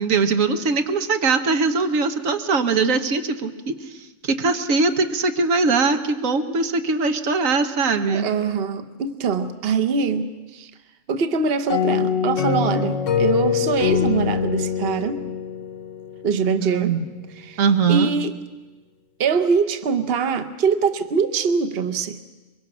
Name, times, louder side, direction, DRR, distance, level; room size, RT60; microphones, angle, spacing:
voice 1, 0.0-8.2 16.6-17.0 17.6-18.1, right 4 dB, 85° right, 7 dB, 1.5 m, -21 dB
voice 2, 8.1-10.7 11.1-15.2 16.2-17.0 17.4-17.6 17.9-18.4 19.2-22.2, right 5 dB, 50° right, 9 dB, 1.1 m, -23 dB
sound 1, 11.7-16.3, left 7 dB, 75° left, 1.3 m, -23 dB
23.0 x 23.0 x 6.2 m, 1.2 s
omnidirectional pair, 1.3 m